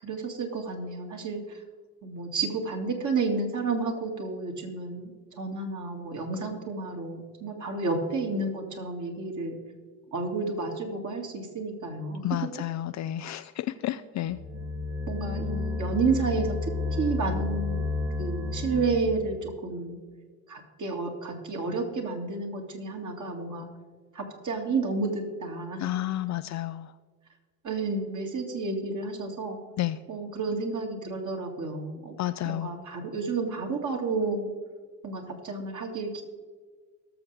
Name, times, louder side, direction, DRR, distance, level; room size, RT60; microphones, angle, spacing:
voice 1, 0.0-1.6 2.0-5.1 5.4-9.6 10.1-12.5 15.1-16.6 17.0-20.0 20.5-23.7 24.1-25.9 27.6-29.6 30.1-32.1 32.5-34.5 35.0-36.2, right 3 dB, 40° right, 2 dB, 2.4 m, -31 dB
voice 2, 12.2-14.4 25.8-26.9 29.8-30.0 32.2-32.7, left 14 dB, 40° left, 12 dB, 0.4 m, -31 dB
sound 1, 14.2-19.4, left 3 dB, 65° right, 2.7 m, -31 dB
19.0 x 6.9 x 3.4 m, 1.5 s
hypercardioid pair, 60°, 45 cm